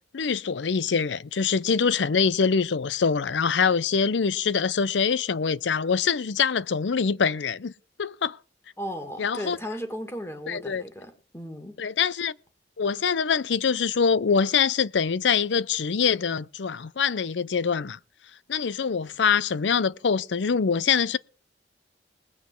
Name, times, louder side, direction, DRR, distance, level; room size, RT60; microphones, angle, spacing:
voice 1, 0.1-7.7 8.0-8.4 9.2-9.6 10.5-10.8 11.8-12.3 12.8-18.0 18.5-21.2, left 6 dB, 90° left, 0.6 m, -24 dB
voice 2, 8.8-11.7, equal, 15° left, 2.1 m, -36 dB
20.5 x 8.2 x 4.7 m
head